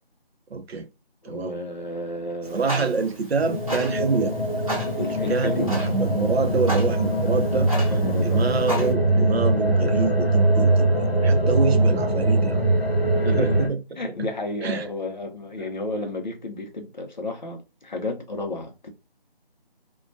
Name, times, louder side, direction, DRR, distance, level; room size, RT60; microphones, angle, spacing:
voice 1, 0.5-0.9 1.2-1.6 2.5-4.4 4.7-7.7 8.2-10.9 11.2-12.6 13.3-13.8 14.2-14.3 14.6-14.9, right 4 dB, 85° right, 0.6 m, -26 dB
voice 2, 1.2-3.2 5.0-5.8 7.8-8.5 13.1-13.6 14.0-18.9, left 2 dB, 50° left, 0.6 m, -32 dB
Clock, 2.4-8.9, right 1 dB, 35° right, 0.7 m, -35 dB
sound 1, 3.4-13.7, right 2 dB, 75° left, 1.1 m, -22 dB
2.2 x 2.2 x 2.5 m
figure-of-eight pair, 170°, 30 cm